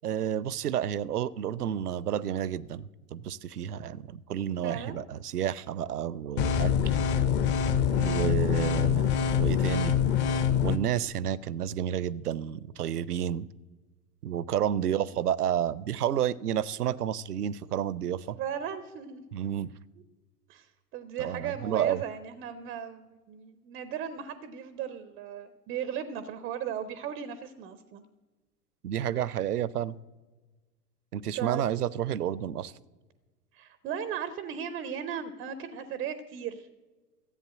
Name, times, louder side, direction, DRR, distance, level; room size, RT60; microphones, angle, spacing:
voice 1, 0.0-2.8 3.1-6.7 8.0-9.1 9.4-9.9 10.6-13.5 14.2-18.4 19.3-19.7 21.2-22.0 28.8-30.0 31.1-32.7, right 10 dB, 75° right, 0.6 m, -30 dB
voice 2, 4.6-5.0 7.9-8.3 14.8-15.1 18.4-19.2 20.5-28.0 31.3-31.6 33.5-36.7, right 8 dB, 20° right, 0.5 m, -37 dB
sound 1, 6.4-10.8, left 8 dB, 25° left, 0.7 m, -25 dB
13.5 x 8.2 x 7.4 m
figure-of-eight pair, 95°, 47 cm